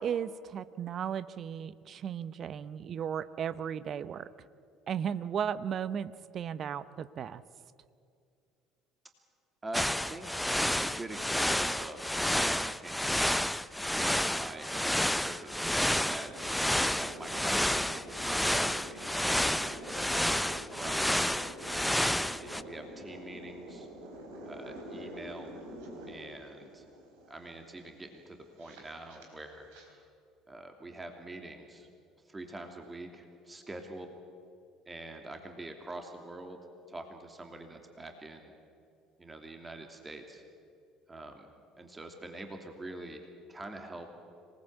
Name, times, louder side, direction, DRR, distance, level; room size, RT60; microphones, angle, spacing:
voice 1, 0.0-4.5 4.9-7.4, right 8 dB, 45° right, 16 dB, 0.9 m, -35 dB
voice 2, 9.6-13.2 13.9-16.5 16.9-20.2 20.7-21.4 22.2-23.9 24.5-25.5 26.1-26.8 27.3-29.7 30.5-31.9 32.2-34.2 34.9-38.5 39.2-40.4 41.1-41.5 41.8-44.2, right 2 dB, 20° right, 4 dB, 2.8 m, -45 dB
sound 1, 9.7-22.6, left 1 dB, 5° left, 0.7 m, -30 dB
sound 2, 16.0-29.9, equal, 70° right, 4.3 m, -47 dB
26.0 x 19.0 x 8.1 m, 2.4 s
figure-of-eight pair, 55°, 0 cm